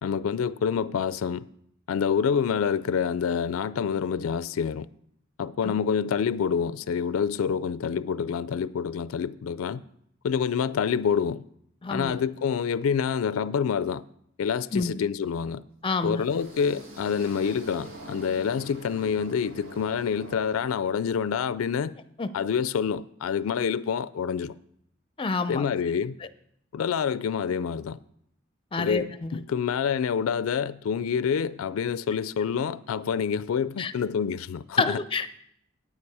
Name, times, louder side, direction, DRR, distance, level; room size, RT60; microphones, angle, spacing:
voice 1, 0.0-1.4 1.9-4.9 5.4-9.8 10.2-11.4 11.9-14.0 14.4-15.6 16.0-21.9 22.3-24.6 25.5-26.2 26.7-28.0 28.8-35.0, left 7 dB, 90° left, 0.4 m, -27 dB
voice 2, 11.8-12.1 14.7-14.9 15.8-16.2 22.2-22.3 25.2-25.6 28.7-29.4 33.8-33.9 34.8-35.4, left 3 dB, 25° left, 0.5 m, -28 dB
sound 1, 16.0-21.2, right 1 dB, 80° right, 1.6 m, -44 dB
9.6 x 9.1 x 4.8 m
head